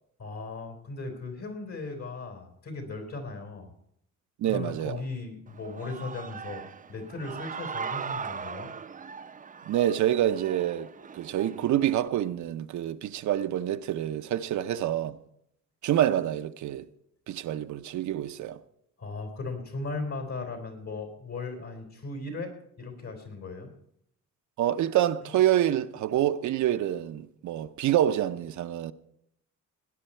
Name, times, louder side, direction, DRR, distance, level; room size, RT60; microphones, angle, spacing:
voice 1, 0.2-3.7 4.4-6.6 6.9-8.7 19.0-22.5 22.8-23.7, left 3 dB, 60° left, 4.2 m, -37 dB
voice 2, 4.4-5.0 9.7-15.2 15.8-16.9 17.3-18.6 24.6-28.9, right 12 dB, 70° right, 0.7 m, -27 dB
Human voice / Cheering, 5.5-12.1, right 6 dB, 25° right, 0.6 m, -39 dB
18.0 x 10.0 x 4.5 m
cardioid pair, 90°, 30 cm